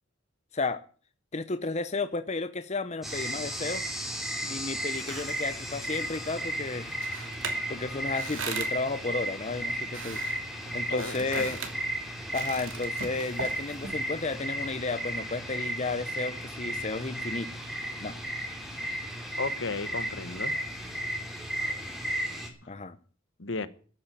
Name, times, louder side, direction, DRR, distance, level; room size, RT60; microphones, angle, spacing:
voice 1, 1.3-3.8 4.4-6.9 7.7-10.2 10.7-11.6 12.3-17.5 18.0-18.1 22.7-23.0, left 3 dB, 35° left, 11 dB, 0.8 m, -33 dB
sound 1, 3.0-22.5, right 1 dB, ahead, 3.2 m, -34 dB
sound 2, 4.7-14.4, right 5 dB, 80° right, 2.7 m, -42 dB
voice 2, 10.9-11.5 19.4-20.5 23.4-23.7, left 3 dB, 70° left, 14 dB, 1.3 m, -34 dB
13.5 x 8.8 x 9.1 m, 0.41 s
head